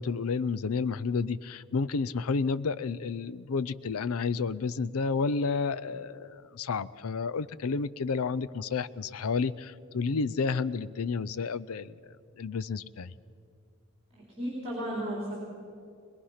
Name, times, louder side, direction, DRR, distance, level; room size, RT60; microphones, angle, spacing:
voice 1, 0.0-11.9 12.4-13.1, left 4 dB, 75° left, 16 dB, 0.5 m, -31 dB
voice 2, 14.1-15.3, equal, 25° right, -4 dB, 4.0 m, -34 dB
21.5 x 21.5 x 5.8 m, 2.4 s
head